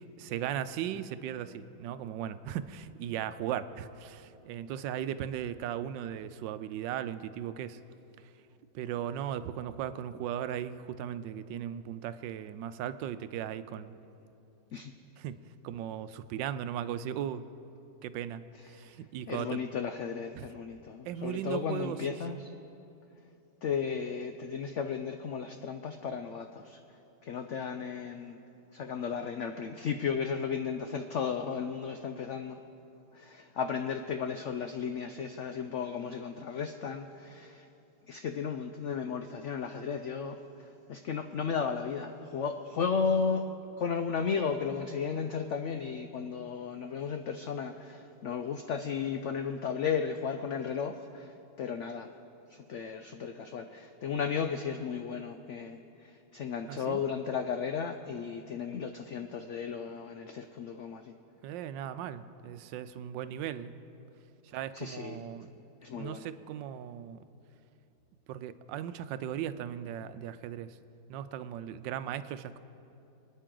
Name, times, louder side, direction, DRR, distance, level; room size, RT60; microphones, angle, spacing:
voice 1, 0.0-7.8 8.7-13.9 15.2-15.4 15.6-17.5 18.0-18.4 18.7-19.6 20.4-20.5 21.1-22.0 22.3-22.4 56.7-57.0 61.4-63.7 64.4-65.5 65.9-67.2 68.3-70.8 71.1-72.6, right 10 dB, 85° right, 13 dB, 1.3 m, -37 dB
voice 2, 19.3-22.5 23.6-26.8 27.2-28.4 28.7-32.6 33.1-37.7 38.1-40.4 40.9-43.5 43.8-52.1 52.5-61.1 64.7-65.3 65.8-66.3, left 6 dB, 90° left, 7 dB, 0.6 m, -34 dB
26.0 x 9.4 x 3.8 m, 2.8 s
omnidirectional pair, 1.9 m